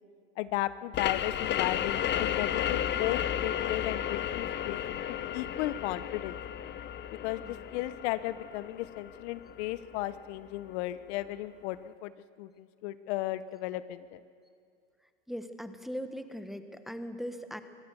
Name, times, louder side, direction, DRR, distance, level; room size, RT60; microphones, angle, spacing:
voice 1, 0.4-6.4 7.2-12.1 12.4-14.2, left 15 dB, 70° left, 15 dB, 0.8 m, -35 dB
sound 1, 0.9-10.3, left 10 dB, 30° left, 0.7 m, -33 dB
voice 2, 15.3-17.6, equal, ahead, 9 dB, 1.1 m, -39 dB
24.0 x 17.0 x 6.8 m, 2.3 s
supercardioid pair, 105°, 35 cm